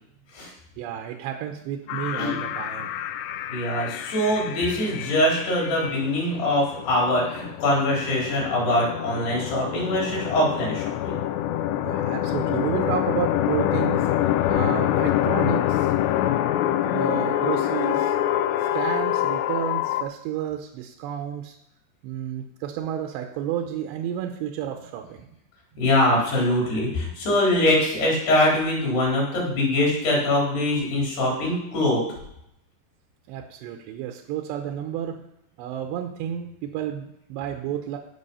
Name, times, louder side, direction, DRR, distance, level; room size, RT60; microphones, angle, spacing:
voice 1, 0.8-2.9 11.8-14.1 14.5-15.9 16.6-18.2 18.6-21.6 22.0-25.3 33.3-35.2 35.6-38.0, right 10 dB, 85° right, 4 dB, 3.0 m, -31 dB
sound 1, 1.9-20.0, left 12 dB, 85° left, 2.7 m, -26 dB
voice 2, 3.5-11.2 25.8-32.0, left 1 dB, 65° left, -3 dB, 5.9 m, -23 dB
17.0 x 5.7 x 5.5 m, 0.79 s
omnidirectional pair, 4.9 m